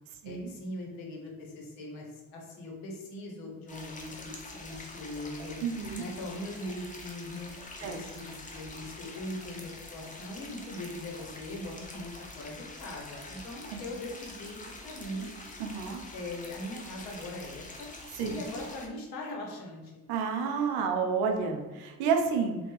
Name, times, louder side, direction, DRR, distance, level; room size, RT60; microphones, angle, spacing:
voice 1, 0.2-5.6 6.0-7.5 7.8-15.3 16.1-17.9 18.3-19.9, left 1 dB, 85° left, 0 dB, 0.8 m, -40 dB
sound 1, 3.7-18.9, left 2 dB, 20° left, 0.6 m, -46 dB
voice 2, 5.6-6.0 7.8-8.0 13.7-13.8 15.6-16.0 18.2-18.3 20.1-22.6, right 5 dB, 85° right, 4 dB, 0.6 m, -30 dB
3.2 x 2.2 x 3.0 m, 1.1 s
supercardioid pair, 70°, 38 cm